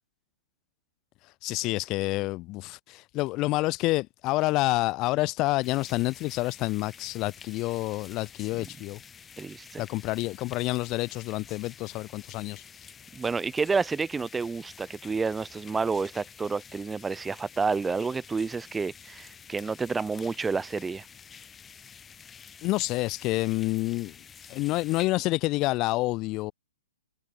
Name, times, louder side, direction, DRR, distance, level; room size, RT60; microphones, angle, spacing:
voice 1, 1.4-9.0 9.8-12.6 22.6-24.1 24.5-26.5, left 20 dB, 30° left, 1.4 m, -28 dB
sound 1, 5.6-25.1, left 7 dB, 15° left, 3.1 m, -49 dB
voice 2, 9.4-9.8 13.1-21.0, right 4 dB, 10° right, 0.9 m, -29 dB
hypercardioid pair, 135°, 0 cm